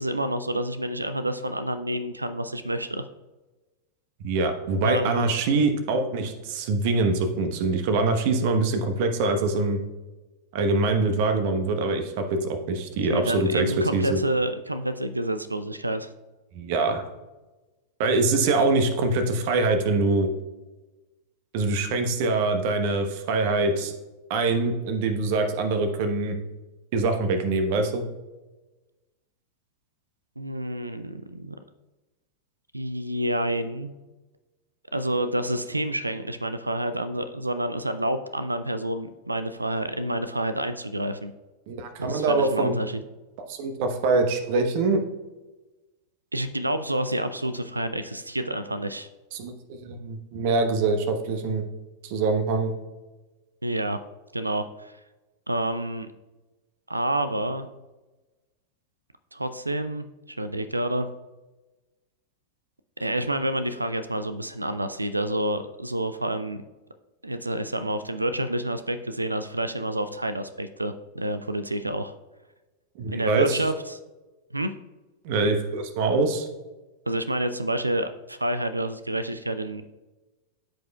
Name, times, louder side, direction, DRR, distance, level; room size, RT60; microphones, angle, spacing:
voice 1, 0.0-3.0 4.8-5.3 13.1-16.1 30.4-31.6 32.7-33.9 34.9-41.3 42.0-43.0 46.3-49.1 53.6-54.0 54.3-54.9 55.5-56.1 56.9-57.7 59.3-60.1 60.4-61.1 63.0-66.6 67.2-72.1 73.1-74.0 74.5-74.7 77.1-79.9, right 1 dB, 85° right, 11 dB, 0.3 m, -28 dB
voice 2, 4.2-9.8 10.5-13.7 13.9-14.2 16.5-17.0 18.0-20.3 21.5-23.9 24.3-26.4 26.9-28.0 41.7-42.8 43.5-45.0 49.3-51.6 52.0-52.7 73.0-73.6 75.2-76.5, right 3 dB, 50° right, 7 dB, 1.0 m, -24 dB
13.0 x 5.1 x 2.3 m, 1.1 s
figure-of-eight pair, 90°, 0 cm